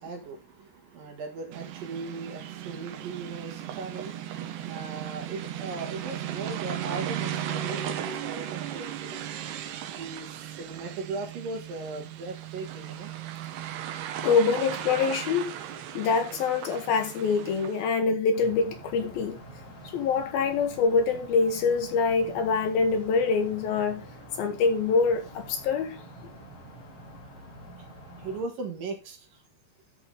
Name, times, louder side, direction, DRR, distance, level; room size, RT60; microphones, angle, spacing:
voice 1, 0.0-9.2 9.9-10.3 10.6-13.1 28.2-29.4, right 3 dB, 60° right, 3.0 m, -38 dB
sound 1, 1.5-18.0, right 10 dB, 75° right, 3.1 m, -36 dB
voice 2, 14.2-15.5 15.9-19.4 19.8-24.1 24.4-26.0, left 5 dB, 70° left, 2.6 m, -25 dB
sound 2, 18.3-28.4, right 1 dB, 40° left, 5.9 m, -46 dB
14.0 x 5.1 x 3.8 m
omnidirectional pair, 4.9 m